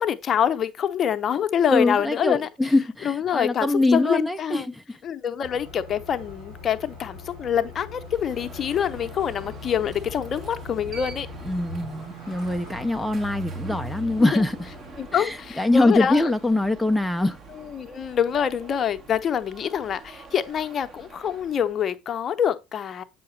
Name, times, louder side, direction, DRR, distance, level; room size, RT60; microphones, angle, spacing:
voice 1, 0.0-2.5 3.0-4.7 5.0-11.3 14.2-14.4 15.0-16.3 17.6-23.0, left 8 dB, 45° left, 0.7 m, -26 dB
voice 2, 1.7-5.0 11.5-14.7 15.1-17.4, left 2 dB, 5° left, 0.5 m, -23 dB
sound 1, 5.4-15.2, left 1 dB, 85° right, 4.2 m, -40 dB
Alarm, 8.0-21.9, right 4 dB, 40° right, 1.2 m, -46 dB
7.7 x 5.7 x 3.2 m
hypercardioid pair, 70°, 0 cm